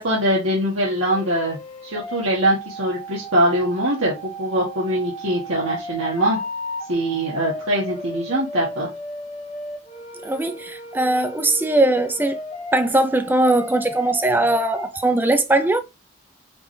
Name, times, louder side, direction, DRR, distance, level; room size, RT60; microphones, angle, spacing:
voice 1, 0.0-1.6 1.8-6.4 6.9-8.9, right 1 dB, 75° right, 1.4 m, -22 dB
sound 1, 0.8-15.2, left 1 dB, 35° left, 0.9 m, -35 dB
voice 2, 10.2-12.4 12.7-15.8, right 2 dB, 10° right, 0.4 m, -20 dB
5.1 x 3.2 x 3.2 m
head